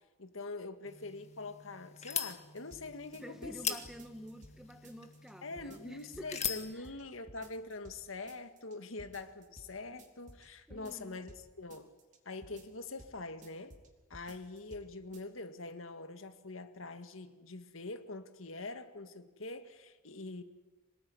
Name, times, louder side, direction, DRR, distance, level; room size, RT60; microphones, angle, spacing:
voice 1, 0.2-3.8 5.4-11.9 12.3-13.7 14.1-20.4, left 3 dB, 90° left, 8 dB, 1.9 m, -44 dB
sound 1, 0.9-6.7, left 9 dB, 35° left, 1.9 m, -42 dB
sound 2, 2.3-2.8 3.1-4.6 4.8-5.3 5.6-6.3 6.6-7.0 7.3-8.0 8.3-8.7 9.0-9.7 10.0-11.4 11.7-12.2 12.4-13.1 13.4-13.9 14.1-14.8 15.1-15.2, right 1 dB, 40° right, 3.6 m, -55 dB
voice 2, 3.2-6.9 9.9-10.0 10.7-11.2, equal, 5° right, 8 dB, 1.5 m, -49 dB
27.0 x 19.0 x 9.8 m, 1.2 s
head